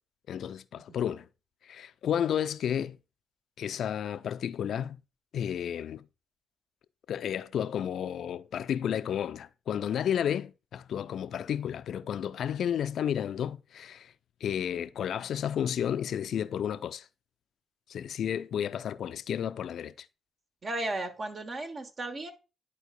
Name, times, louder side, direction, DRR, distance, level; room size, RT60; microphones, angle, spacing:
voice 1, 0.3-1.3 1.6-3.0 3.6-5.0 5.3-6.0 7.1-14.1 14.4-17.1 17.9-20.1, left 9 dB, 65° left, 0.4 m, -32 dB
voice 2, 20.6-22.3, right 2 dB, 50° right, 1.3 m, -35 dB
10.5 x 4.5 x 2.4 m
hypercardioid pair, 40°, 0 cm